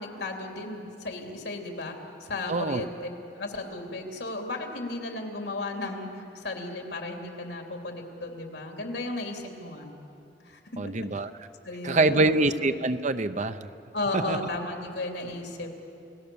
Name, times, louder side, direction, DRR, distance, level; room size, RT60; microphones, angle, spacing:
voice 1, 0.0-3.1 3.4-9.9 10.4-10.9 11.6-12.3 13.9-15.7, left 2 dB, 85° left, 2 dB, 3.1 m, -34 dB
voice 2, 2.5-2.9 10.8-11.3 11.8-13.7 14.1-14.4, right 2 dB, 45° right, 11 dB, 0.7 m, -25 dB
29.5 x 18.0 x 7.0 m, 2.7 s
head